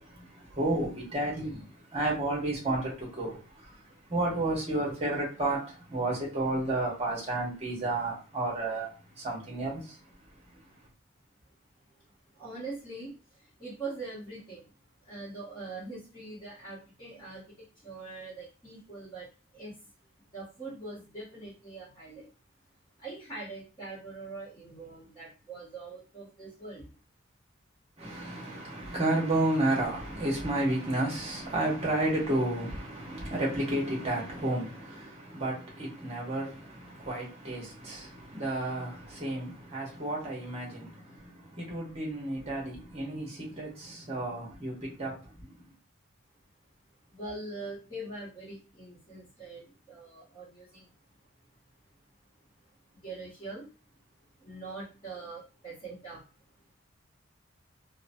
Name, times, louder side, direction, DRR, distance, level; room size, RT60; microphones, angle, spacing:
voice 1, 0.0-10.8 28.0-45.7, right 2 dB, 30° right, 1.0 m, -32 dB
voice 2, 12.3-14.7 15.0-19.8 20.2-22.3 23.0-27.0 47.1-50.9 52.9-53.7 54.4-56.2, right 3 dB, 20° left, 1.0 m, -43 dB
2.8 x 2.1 x 2.6 m
head